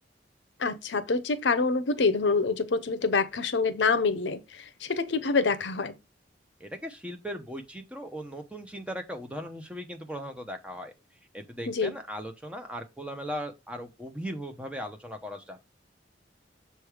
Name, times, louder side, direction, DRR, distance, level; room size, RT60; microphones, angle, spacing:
voice 1, 0.6-6.0 11.7-11.9, left 4 dB, 70° left, 0.6 m, -26 dB
voice 2, 6.6-10.9 11.3-15.6, equal, 5° right, 0.8 m, -38 dB
6.8 x 3.2 x 4.8 m
head